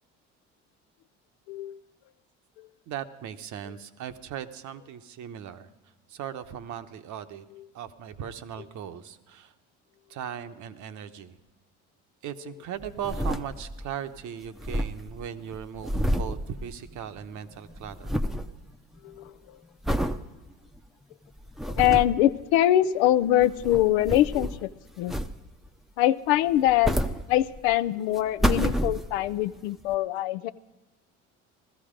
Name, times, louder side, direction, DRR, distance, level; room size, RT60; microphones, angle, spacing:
voice 1, 1.5-1.8 2.6-2.7 19.0-19.6 21.7-24.7 25.0-25.1 26.0-27.0 27.3-30.5, left 13 dB, 90° left, 11 dB, 0.6 m, -23 dB
voice 2, 2.9-5.7 6.1-7.4 7.7-9.5 10.1-11.4 12.2-18.2, right 9 dB, 60° right, 10 dB, 1.0 m, -38 dB
sound 1, 12.8-13.9 14.2-14.3 14.5-17.2 17.5-18.5 19.0-19.3 19.8-20.2 20.7-20.8 21.4-22.2 23.2-24.7 25.1-25.7 26.5-27.8 28.2-29.4 29.9-30.0, equal, ahead, 0.7 m, -29 dB
15.5 x 13.5 x 5.1 m, 1.2 s
supercardioid pair, 80°, 33 cm